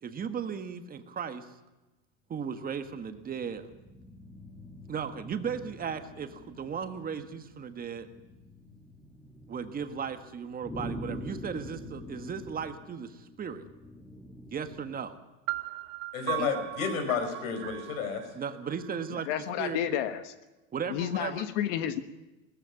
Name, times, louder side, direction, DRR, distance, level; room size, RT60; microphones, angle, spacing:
voice 1, 0.0-1.5 2.3-3.7 4.9-8.1 9.5-13.6 14.5-15.2 16.4-16.5 18.3-19.3 19.6-19.8 20.7-21.5, right 7 dB, 20° right, 9 dB, 1.6 m, -36 dB
sound 1, 2.7-15.2, equal, 5° left, 1.5 m, -46 dB
sound 2, 15.5-19.3, right 20 dB, 50° right, 0.9 m, -38 dB
voice 2, 16.1-18.2, left 6 dB, 85° left, 7 dB, 5.0 m, -31 dB
voice 3, 19.3-20.3 20.9-22.0, left 10 dB, 65° left, 10 dB, 1.4 m, -31 dB
19.0 x 14.5 x 9.8 m, 1.1 s
supercardioid pair, 135°, 40 cm